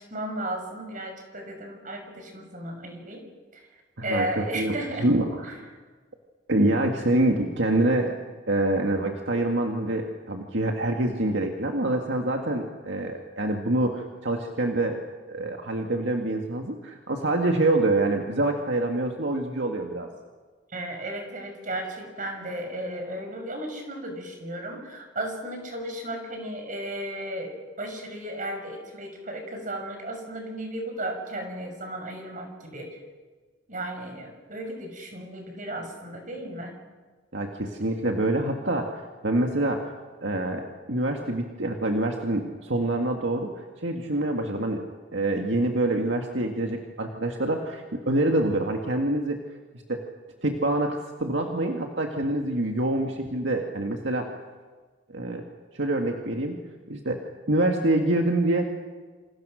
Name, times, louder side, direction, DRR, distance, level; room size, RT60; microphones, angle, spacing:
voice 1, 0.1-3.2 3.5-3.7 4.0-5.1 5.4-5.5 20.7-33.0 33.7-36.8, right 1 dB, 45° right, 4 dB, 6.1 m, -34 dB
voice 2, 4.0-5.5 6.5-8.2 8.5-15.0 15.3-20.1 37.3-39.9 40.2-44.8 45.1-49.4 49.9-50.1 50.4-54.3 55.1-55.4 55.7-56.6 56.9-58.6, right 1 dB, 75° right, 2 dB, 2.0 m, -26 dB
27.5 x 27.0 x 6.5 m, 1.4 s
head